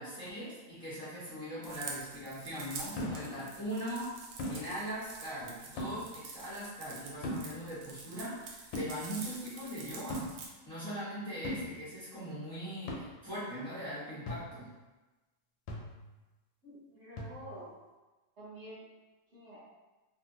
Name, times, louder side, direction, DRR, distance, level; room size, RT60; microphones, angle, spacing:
voice 1, 0.0-4.2 4.5-10.3 10.6-14.7, equal, 5° left, -11 dB, 0.7 m, -40 dB
sound 1, 1.6-10.5, right 4 dB, 80° right, 1.0 m, -47 dB
sound 2, 3.0-3.4 4.4-4.7 5.8-6.0 7.2-7.6 8.7-8.9 10.1-10.4 11.4-11.7 12.9-13.0 14.3-14.6 15.7-16.1 17.2-17.6, left 1 dB, 70° left, 1.3 m, -38 dB
voice 2, 16.6-17.8 18.4-18.9 19.3-19.6, right 1 dB, 45° right, -12 dB, 1.0 m, -48 dB
3.4 x 2.5 x 2.8 m, 1.2 s
omnidirectional pair, 2.4 m